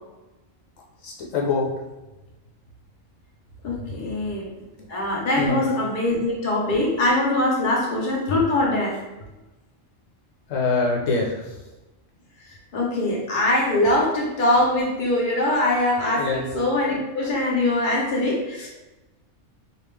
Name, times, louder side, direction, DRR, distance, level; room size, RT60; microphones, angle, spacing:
voice 1, 1.0-1.7 5.4-5.6 8.3-8.4 10.5-11.6 16.2-16.4, left 3 dB, 80° left, -2 dB, 1.1 m, -24 dB
voice 2, 3.6-4.5 4.9-9.0 12.7-18.7, left 1 dB, 45° left, -3 dB, 1.0 m, -22 dB
3.7 x 2.4 x 3.3 m, 1.0 s
omnidirectional pair, 1.3 m